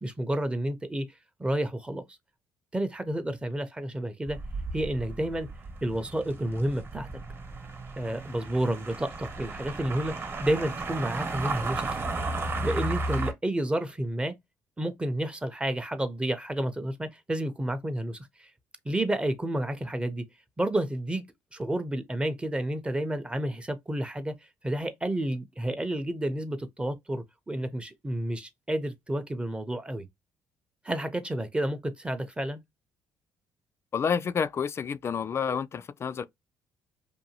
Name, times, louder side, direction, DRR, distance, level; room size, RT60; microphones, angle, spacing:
voice 1, 0.0-1.1 1.4-2.0 2.7-4.4 4.7-5.5 5.8-7.1 8.0-12.0 12.6-14.4 14.8-18.5 18.8-20.2 20.6-24.3 24.6-30.1 30.8-32.6, right 1 dB, 15° right, 0.6 m, -30 dB
sound 1, 4.3-13.3, right 2 dB, 35° right, 1.0 m, -34 dB
voice 2, 33.9-36.3, left 6 dB, 40° left, 0.3 m, -29 dB
2.6 x 2.2 x 2.8 m
supercardioid pair, 70°, 7 cm